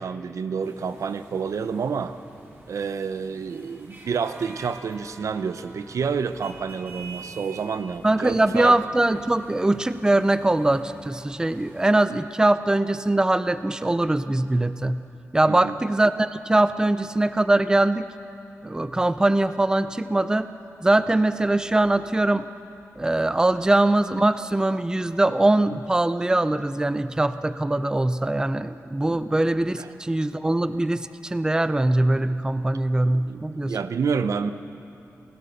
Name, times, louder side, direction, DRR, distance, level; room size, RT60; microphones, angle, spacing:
voice 1, 0.0-2.1 2.7-8.8 15.4-15.8 29.1-29.2 29.8-29.9 33.1-34.5, right 6 dB, 75° right, 11 dB, 0.8 m, -29 dB
sound 1, 0.6-11.8, right 2 dB, 40° right, 4.2 m, -47 dB
voice 2, 8.0-15.0 15.3-18.1 18.6-20.5 20.8-22.5 23.0-33.8, right 2 dB, 15° right, 12 dB, 0.5 m, -22 dB
28.0 x 16.0 x 6.7 m, 2.8 s
wide cardioid pair, 105°, 5 cm